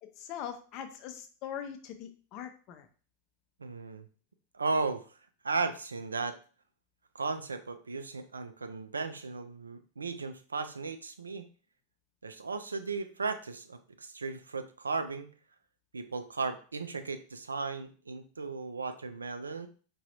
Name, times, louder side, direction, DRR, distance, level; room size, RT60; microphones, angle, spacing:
voice 1, 0.0-2.9, left 9 dB, 40° left, 7 dB, 0.5 m, -42 dB
voice 2, 3.6-4.1 4.5-5.2 5.4-6.4 7.1-11.5 12.2-15.3 15.9-19.7, right 4 dB, 75° right, 9 dB, 0.3 m, -35 dB
4.7 x 2.3 x 2.8 m, 0.39 s
figure-of-eight pair, 90°, 0 cm